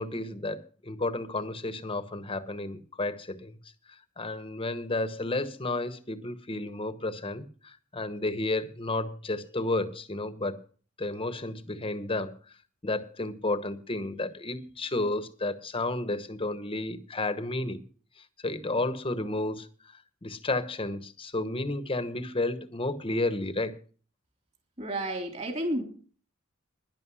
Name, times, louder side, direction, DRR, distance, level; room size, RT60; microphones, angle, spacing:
voice 1, 0.0-3.6 4.2-10.6 11.0-12.4 12.8-17.8 18.4-19.7 20.2-23.8, left 2 dB, 25° left, 1.1 m, -32 dB
voice 2, 24.8-25.8, right 1 dB, 35° right, 3.3 m, -31 dB
11.5 x 10.5 x 6.2 m
head